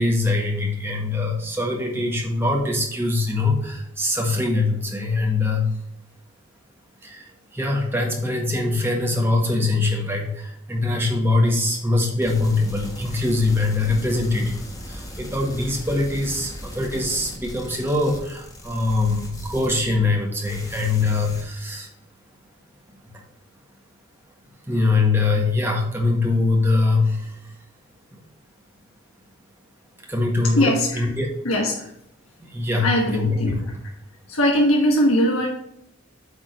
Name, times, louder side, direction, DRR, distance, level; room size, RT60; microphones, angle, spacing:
voice 1, 0.0-5.7 7.0-7.2 7.5-14.6 14.9-21.9 24.7-27.4 30.1-31.4 32.4-33.7, left 2 dB, 10° right, 0 dB, 1.5 m, -23 dB
sound 1, 12.2-20.2 20.4-21.4, equal, 15° left, 1.4 m, -37 dB
voice 2, 30.6-31.1 31.4-31.7 32.8-33.6 34.3-35.5, equal, 75° left, 0 dB, 1.3 m, -20 dB
8.4 x 3.8 x 6.3 m, 0.75 s
head